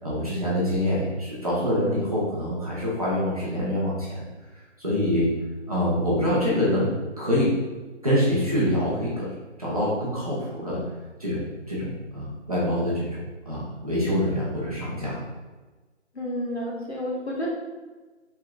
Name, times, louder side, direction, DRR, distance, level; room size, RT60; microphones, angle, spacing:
voice 1, 0.0-4.3 4.8-5.3 5.7-6.9 7.2-7.5 8.0-9.3 9.6-10.8 11.2-15.2, equal, 30° right, -8 dB, 1.0 m, -25 dB
voice 2, 16.1-17.5, left 1 dB, 60° left, -4 dB, 1.4 m, -30 dB
5.5 x 3.8 x 2.3 m, 1.3 s
figure-of-eight pair, 165°, 37 cm